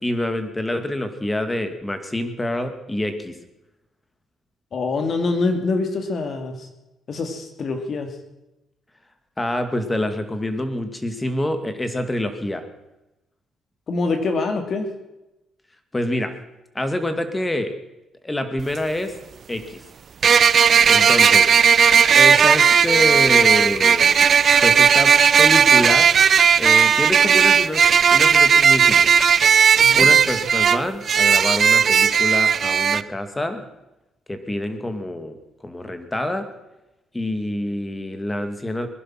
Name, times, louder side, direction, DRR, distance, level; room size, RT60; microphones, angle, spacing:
voice 1, 0.0-3.4 9.4-12.6 15.9-16.3 16.7-17.7 18.2-19.1 19.5-19.8 20.9-21.5 22.2-24.1 24.6-26.1 26.6-27.8 28.1-29.1 30.0-33.7 34.3-35.4 35.6-36.5 37.1-38.9, left 1 dB, 15° left, 8 dB, 2.3 m, -26 dB
voice 2, 4.7-6.7 7.1-8.1 13.9-14.9 29.8-30.1, left 3 dB, 50° left, 6 dB, 2.8 m, -25 dB
sound 1, 18.6-18.7 20.2-33.0, right 7 dB, 50° right, 0.5 m, -15 dB
21.0 x 11.5 x 6.0 m, 0.97 s
cardioid pair, 90°, 0 cm